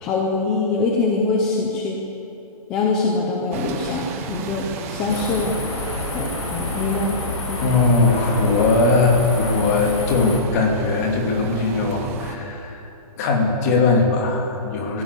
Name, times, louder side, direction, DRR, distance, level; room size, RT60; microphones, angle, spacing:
voice 1, 0.0-2.0 2.7-5.6 6.1-7.2 7.5-7.6, left 3 dB, 5° left, -1 dB, 0.4 m, -23 dB
Bus, 3.5-12.4, right 5 dB, 20° right, 1.3 m, -34 dB
sound 1, 5.1-10.4, left 2 dB, 50° left, 6.0 m, -29 dB
voice 2, 7.6-12.8 13.2-15.0, left 3 dB, 25° left, 1 dB, 2.6 m, -19 dB
23.0 x 15.5 x 8.3 m, 2.9 s
hypercardioid pair, 170°, 20 cm